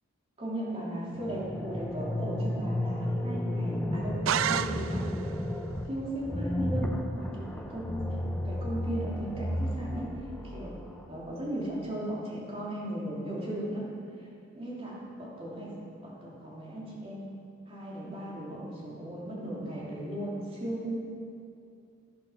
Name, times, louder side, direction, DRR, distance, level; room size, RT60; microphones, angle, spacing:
voice 1, 0.4-5.0 5.8-8.1 8.4-10.1 10.4-10.7 11.1-13.9 14.2-14.3 14.5-15.7 16.0-17.3 17.7-21.0, right 1 dB, 30° right, -5 dB, 3.0 m, -36 dB
sound 1, 1.1-11.1, left 1 dB, 5° left, 0.7 m, -33 dB
sound 2, 4.3-5.3, right 9 dB, 80° right, 0.3 m, -30 dB
12.0 x 11.5 x 5.7 m, 2.4 s
head